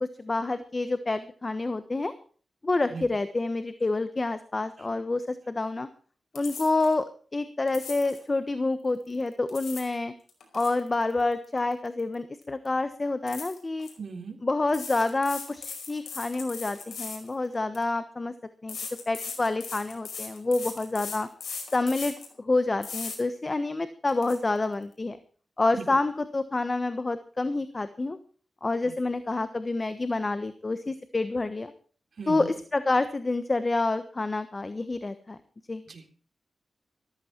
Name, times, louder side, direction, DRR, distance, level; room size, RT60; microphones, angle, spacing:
voice 1, 0.0-2.1 2.6-5.9 6.3-7.1 7.3-10.1 10.5-13.9 14.4-18.3 18.6-18.8 19.1-21.3 21.7-25.2 25.6-28.2 28.6-31.7 32.3-35.4 35.7-35.8, left 2 dB, 30° left, 11 dB, 1.2 m, -28 dB
sound 1, 6.3-6.9 7.7-8.2 9.3-9.9 10.3-12.1 12.4-12.7 13.3-13.9 14.7-17.8 18.7-22.3 22.8-23.2 23.6-23.7 24.1-24.4, left 5 dB, 80° left, 5.0 m, -39 dB
voice 2, 14.0-14.4 25.7-26.0 28.8-28.9 32.2-32.5 35.9-36.1, right 5 dB, 60° right, 4 dB, 3.7 m, -38 dB
14.5 x 14.0 x 4.5 m, 0.42 s
wide cardioid pair, 85°, 0 cm